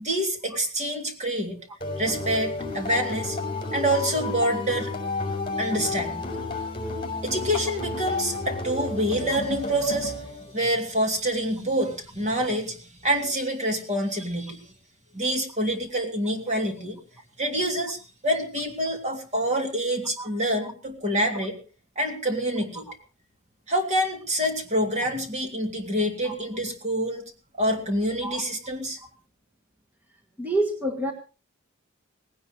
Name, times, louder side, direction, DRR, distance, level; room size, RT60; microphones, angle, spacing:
voice 1, 0.0-1.6 2.0-3.4 3.7-4.9 5.6-6.3 7.2-10.2 10.5-14.6 15.1-17.0 17.4-21.6 21.9-22.9 23.7-27.3 27.6-29.0, right 1 dB, 35° right, 4 dB, 3.2 m, -26 dB
sound 1, 1.8-10.7, left 3 dB, 25° left, 5.5 m, -31 dB
voice 2, 30.4-31.1, right 1 dB, 10° right, 2 dB, 1.6 m, -27 dB
18.5 x 17.5 x 3.3 m, 0.34 s
head